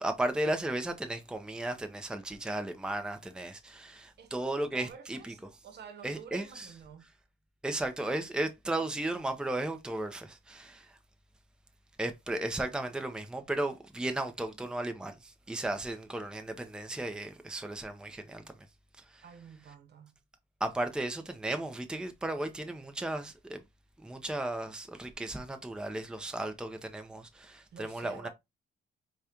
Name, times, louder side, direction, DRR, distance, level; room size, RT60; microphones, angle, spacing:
voice 1, 0.0-5.3 6.0-6.7 7.6-11.0 12.0-18.4 19.1-19.2 20.6-23.6 24.0-28.3, right 1 dB, 5° right, 0.6 m, -35 dB
voice 2, 4.2-7.1 19.2-20.2 27.7-28.3, right 7 dB, 60° right, 1.0 m, -49 dB
4.8 x 2.4 x 2.9 m
cardioid pair, 90°, 20 cm